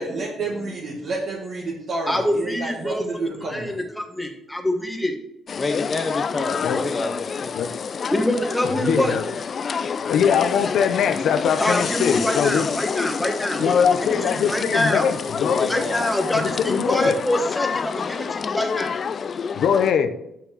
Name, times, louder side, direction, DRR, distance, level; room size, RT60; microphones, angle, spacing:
voice 1, 0.0-3.8, right 3 dB, 60° right, -5 dB, 2.0 m, -29 dB
voice 2, 2.1-5.2 8.1-9.1 11.6-15.1 15.7-18.9, left 1 dB, 5° left, 4 dB, 1.5 m, -25 dB
sound 1, 5.5-19.9, left 6 dB, 45° left, 0.3 m, -28 dB
voice 3, 5.6-7.6 15.4-16.1, left 3 dB, 30° left, 5 dB, 0.8 m, -28 dB
voice 4, 8.8-9.2 10.1-12.7 13.6-15.8 16.3-17.1 19.5-20.2, left 7 dB, 70° left, 9 dB, 0.7 m, -21 dB
6.0 x 5.8 x 6.0 m, 0.81 s
cardioid pair, 90°, 0 cm